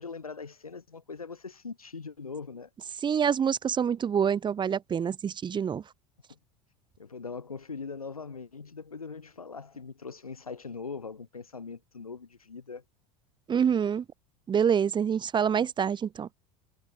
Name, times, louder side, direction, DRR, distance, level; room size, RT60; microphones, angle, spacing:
voice 1, 0.0-2.7 6.3-6.4 7.0-12.8, left 5 dB, 85° left, 5.0 m, -41 dB
voice 2, 3.0-5.8 13.5-14.0 14.5-16.3, right 7 dB, 25° right, 1.3 m, -26 dB
figure-of-eight pair, 75°, 18 cm